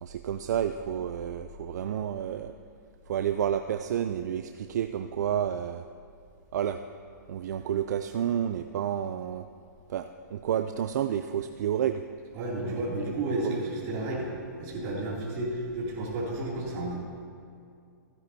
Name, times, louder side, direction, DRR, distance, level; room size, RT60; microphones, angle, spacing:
voice 1, 0.0-2.5 3.1-5.8 6.5-6.8 7.3-9.5 9.9-12.0 12.6-12.8 13.1-13.2 13.4-13.6, right 9 dB, 60° right, 8 dB, 0.4 m, -30 dB
voice 2, 12.3-14.3 14.6-17.0, right 2 dB, 30° right, -5 dB, 2.7 m, -32 dB
15.5 x 9.6 x 2.7 m, 2.4 s
hypercardioid pair, 155°, 10 cm